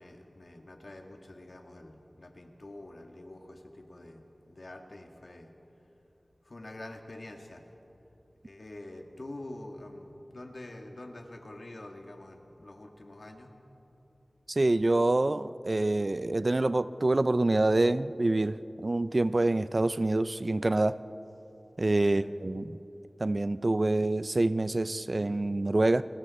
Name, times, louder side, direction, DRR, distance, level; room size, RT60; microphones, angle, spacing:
voice 1, 0.0-5.5 6.4-7.6 8.4-13.6 22.0-22.3, left 1 dB, 60° left, 3 dB, 2.0 m, -46 dB
voice 2, 14.5-21.0 21.8-22.8 23.2-26.0, right 2 dB, 50° right, 14 dB, 0.5 m, -26 dB
29.5 x 21.0 x 4.3 m, 3.0 s
wide cardioid pair, 50°, 0 cm